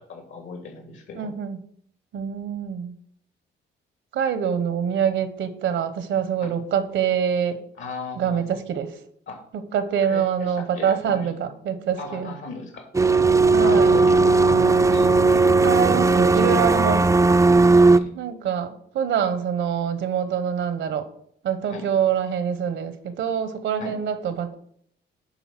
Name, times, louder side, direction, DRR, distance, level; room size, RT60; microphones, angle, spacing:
voice 1, 0.0-1.3 6.4-6.5 7.8-8.4 9.3-9.4 10.0-11.5 12.0-13.2 13.6-15.5 16.7-16.9 17.5-18.1 21.7-21.9 23.8-24.0, left 4 dB, 75° left, 3 dB, 2.7 m, -37 dB
voice 2, 1.1-1.6 2.1-2.9 4.1-7.6 8.2-9.0 9.5-12.3 13.5-14.0 15.6-17.1 18.1-21.1 21.4-24.6, right 8 dB, 75° right, 12 dB, 1.1 m, -25 dB
sound 1, 12.9-18.0, right 3 dB, 15° right, 0.4 m, -17 dB
10.5 x 4.0 x 6.0 m, 0.67 s
cardioid pair, 90°, 20 cm